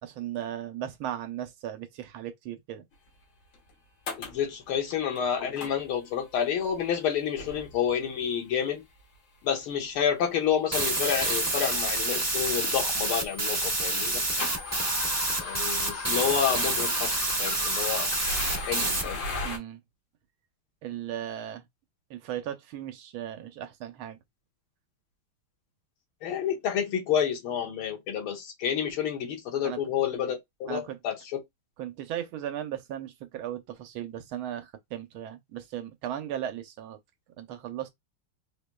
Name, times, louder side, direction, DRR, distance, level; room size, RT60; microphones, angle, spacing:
voice 1, 0.0-2.8 19.4-19.8 20.8-21.7 22.1-24.2 29.6-29.8 30.7-31.0 31.8-37.0 37.4-37.9, right 11 dB, 80° right, 1.6 m, -36 dB
sound 1, 3.5-3.6 4.1-4.5 4.9-5.2 5.6-6.2 6.7-6.9 7.4-8.0 9.0-9.1 10.0-10.1 10.5-10.6 11.3-11.4 11.6-13.5 13.8-19.6, left 3 dB, 65° left, 1.8 m, -37 dB
voice 2, 4.2-8.9 9.4-14.4 15.4-18.1 18.6-19.2 26.2-31.2, left 8 dB, 85° left, 2.0 m, -29 dB
sound 2, 10.7-19.0, right 2 dB, 15° right, 0.6 m, -28 dB
4.8 x 2.9 x 2.2 m
omnidirectional pair, 2.3 m